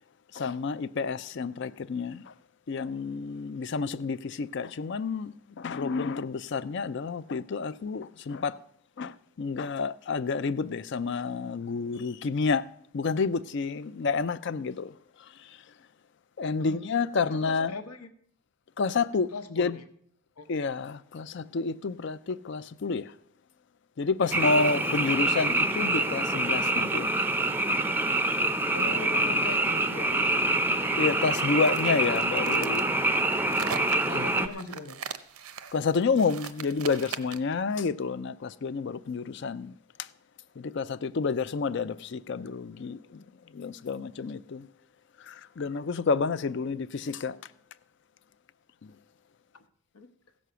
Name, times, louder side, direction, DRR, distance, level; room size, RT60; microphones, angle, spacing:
voice 1, 0.3-2.3 2.7-8.6 9.0-12.6 12.9-14.9 16.4-17.7 18.8-19.8 20.5-23.1 24.0-27.1 31.0-32.8 34.1-34.3 35.7-39.7 40.6-43.2 43.5-44.7 45.3-47.4 48.8-48.9, left 4 dB, 50° left, 0.4 m, -29 dB
voice 2, 16.5-17.0 17.3-18.1 19.3-19.8 20.4-20.5 24.2-25.0 28.7-30.6 32.1-33.4 34.1-35.0 41.7-41.8 46.6-46.8 49.5-49.6 49.9-50.1, left 3 dB, 80° left, 1.0 m, -41 dB
Frog, 24.3-34.5, right 2 dB, 10° right, 0.5 m, -26 dB
sound 1, 31.6-37.5, right 7 dB, 85° right, 0.7 m, -39 dB
15.5 x 6.3 x 6.8 m
head